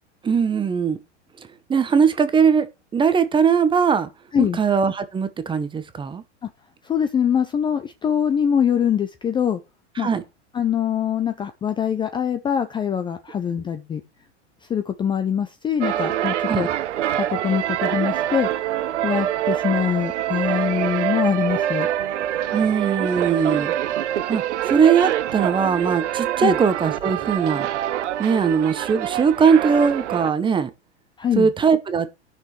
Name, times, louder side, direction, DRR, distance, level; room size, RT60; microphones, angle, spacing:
voice 1, 0.2-1.0 1.7-2.7 2.9-4.1 4.4-6.2 10.0-10.2 16.5-16.7 22.5-23.7 24.3-27.7 28.2-30.7 31.4-32.1, right 6 dB, 15° right, 0.8 m, -20 dB
voice 2, 6.8-9.6 10.0-10.1 10.5-14.0 14.7-16.7 17.2-18.5 19.0-21.9 26.4-26.6 31.2-31.5, left 8 dB, 15° left, 0.5 m, -23 dB
sound 1, 15.8-30.3, right 11 dB, 75° right, 0.8 m, -25 dB
17.0 x 6.1 x 3.2 m
hypercardioid pair, 120°, 35 cm